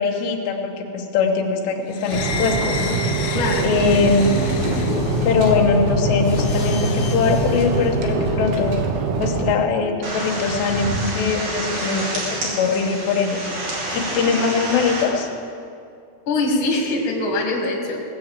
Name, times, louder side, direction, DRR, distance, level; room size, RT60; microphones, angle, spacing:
voice 1, 0.0-3.0 3.6-4.4 5.3-8.8 9.2-13.5 13.9-15.3, left 5 dB, 90° left, 2 dB, 3.5 m, -21 dB
sound 1, 2.0-8.6, left 7 dB, 75° left, 1.9 m, -26 dB
sound 2, 2.1-9.5, right 5 dB, 80° right, 3.2 m, -24 dB
voice 2, 3.3-3.7 13.9-14.0 14.2-14.3 16.3-18.0, left 2 dB, 40° left, 0 dB, 2.1 m, -23 dB
sound 3, 10.0-15.0, right 1 dB, 50° right, 4.3 m, -27 dB
18.5 x 7.9 x 7.4 m, 2.4 s
omnidirectional pair, 4.8 m